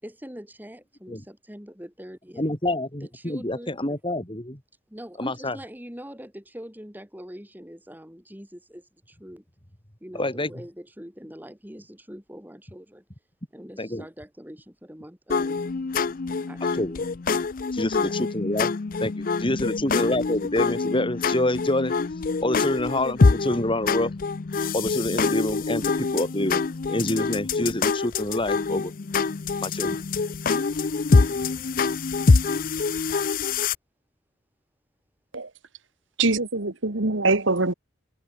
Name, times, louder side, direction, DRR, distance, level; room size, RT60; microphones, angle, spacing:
voice 1, 0.0-2.4 3.0-3.8 4.9-9.4 10.0-13.0 13.5-15.6 16.5-17.1 18.0-18.2 19.8-19.9, equal, 10° right, 6.9 m, -43 dB
voice 2, 2.4-4.6 5.2-5.6 10.1-10.5 13.8-14.1 16.8-17.0 17.7-18.7 19.0-21.9 22.4-24.1 24.7-26.6 26.9-28.9 29.6-30.0, left 1 dB, 25° left, 3.5 m, -27 dB
sound 1, 15.3-33.7, left 4 dB, 45° left, 0.5 m, -25 dB
voice 3, 36.2-37.7, right 3 dB, 75° right, 2.0 m, -23 dB
head